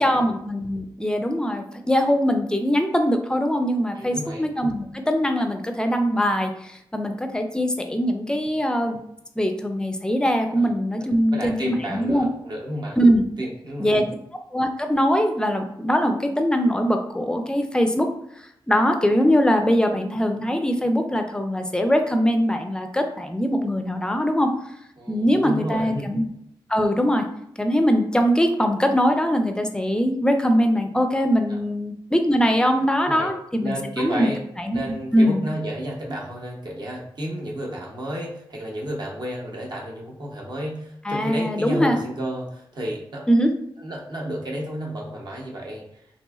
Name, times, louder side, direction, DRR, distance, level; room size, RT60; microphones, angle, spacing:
voice 1, 0.0-9.0 9.4-12.3 13.0-13.2 13.8-14.0 14.5-18.1 18.7-24.5 25.1-26.2 26.7-27.3 27.6-34.3 34.6-34.8 35.1-35.4 41.0-42.0 43.3-43.5, equal, 10° left, 5 dB, 0.4 m, -22 dB
voice 2, 4.0-4.4 10.6-10.7 11.3-13.0 13.4-14.0 25.0-26.1 31.5-31.6 33.1-33.3 33.6-34.4 34.7-43.2 43.8-45.8, equal, 50° right, -2 dB, 0.8 m, -31 dB
3.0 x 2.6 x 2.3 m, 0.75 s
cardioid pair, 75°, 9 cm